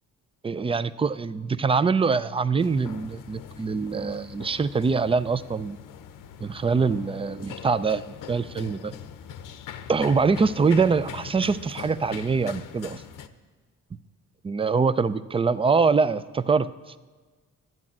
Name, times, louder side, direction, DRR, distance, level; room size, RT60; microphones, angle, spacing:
voice 1, 0.4-5.8 6.4-8.0 8.3-8.9 9.9-13.0 14.4-16.7, right 5 dB, 20° right, 16 dB, 0.4 m, -24 dB
sound 1, 2.6-13.3, left 8 dB, 80° left, 0.8 m, -42 dB
11.0 x 10.5 x 7.4 m, 1.3 s
cardioid pair, 110°, 32 cm